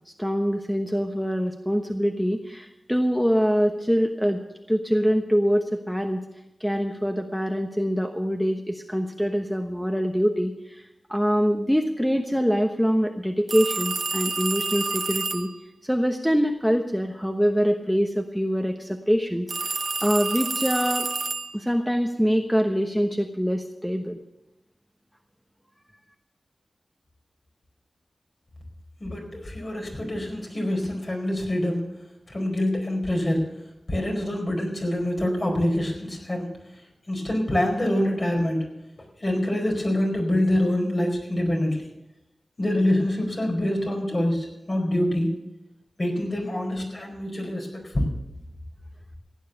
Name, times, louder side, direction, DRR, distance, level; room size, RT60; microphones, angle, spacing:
voice 1, 0.2-4.4 4.7-6.2 6.6-10.8 11.1-15.5 15.8-21.1 21.5-24.2, equal, ahead, 4 dB, 1.1 m, -24 dB
sound 1, 13.5-15.6 19.5-21.7, right 4 dB, 70° right, 1.0 m, -29 dB
voice 2, 29.0-31.8 32.3-33.5 33.9-36.6 37.1-38.7 39.2-41.9 42.6-45.3 46.0-48.1, left 1 dB, 45° left, 1 dB, 4.7 m, -25 dB
16.0 x 9.2 x 6.8 m, 0.91 s
wide cardioid pair, 65°, 0 cm